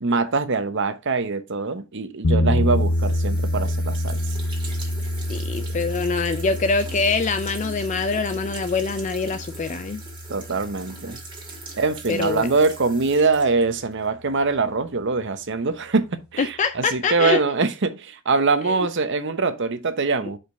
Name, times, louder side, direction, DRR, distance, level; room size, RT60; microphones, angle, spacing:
voice 1, 0.0-4.2 5.6-5.8 10.3-11.2 11.8-20.4, right 4 dB, 60° right, 0.9 m, -23 dB
sound 1, 2.2-12.3, left 1 dB, 85° left, 0.7 m, -27 dB
sound 2, 2.7-14.1, right 3 dB, 25° right, 2.2 m, -41 dB
voice 2, 5.3-10.0 12.1-12.5 16.4-17.4 18.6-18.7 20.2-20.3, left 4 dB, 35° left, 0.4 m, -24 dB
5.1 x 4.4 x 6.1 m
head